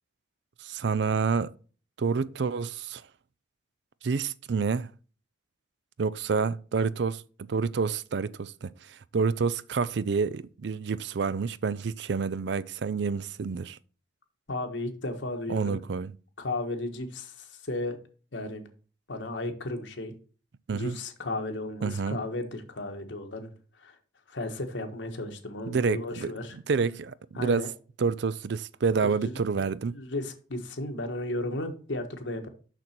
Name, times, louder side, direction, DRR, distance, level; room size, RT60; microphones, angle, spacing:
voice 1, 0.6-1.5 2.0-3.0 4.0-4.9 6.0-13.8 15.5-16.2 20.7-21.0 21.8-22.2 25.7-27.7 28.0-30.0, right 5 dB, 70° right, 0.4 m, -28 dB
voice 2, 14.5-15.8 16.4-18.0 18.3-18.6 19.1-20.1 20.7-23.5 23.8-23.9 24.3-26.6 27.3-27.7 29.0-32.5, left 2 dB, 90° left, 1.4 m, -34 dB
6.6 x 6.0 x 4.4 m
head